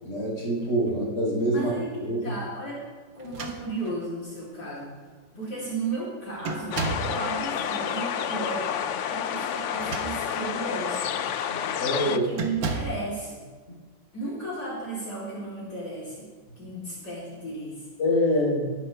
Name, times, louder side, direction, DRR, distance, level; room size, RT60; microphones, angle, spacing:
voice 1, 0.0-1.7 2.0-2.2 11.5-12.2 18.0-18.8, equal, 40° left, -5 dB, 4.5 m, -25 dB
voice 2, 1.5-2.8 3.1-4.9 5.4-8.7 9.1-11.3 12.0-13.5 14.1-16.3 16.6-17.9, right 2 dB, 60° left, -8 dB, 4.1 m, -34 dB
sound 1, 3.2-4.1 5.0-5.1 5.4-5.8 6.4-7.2 9.6-10.5 11.0-11.2 12.3-13.1, right 4 dB, 85° right, 2.0 m, -33 dB
sound 2, 6.7-12.2, left 8 dB, 90° left, 0.6 m, -30 dB
20.0 x 11.0 x 3.5 m, 1.4 s
omnidirectional pair, 2.0 m